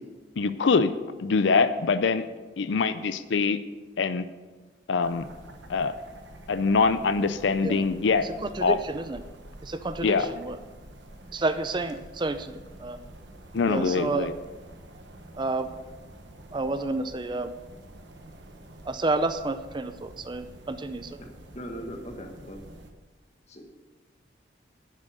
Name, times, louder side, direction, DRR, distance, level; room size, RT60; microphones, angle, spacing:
voice 1, 0.4-0.9 1.2-2.2 2.6-3.6 4.0-4.3 4.9-5.3 5.7-5.9 6.5-8.3 8.6-8.8 10.0-10.3 13.5-14.3, left 4 dB, 80° left, 12 dB, 0.5 m, -23 dB
sound 1, 5.0-22.9, right 1 dB, 75° right, 1.2 m, -48 dB
voice 2, 8.2-9.2 9.6-10.6 11.3-13.0 13.7-14.3 15.4-15.7 16.5-17.5 18.9-21.2, right 2 dB, 25° right, 10 dB, 0.4 m, -30 dB
voice 3, 21.5-22.6 23.5-23.7, equal, 35° left, 2 dB, 1.5 m, -39 dB
10.0 x 7.4 x 6.7 m, 1.3 s
head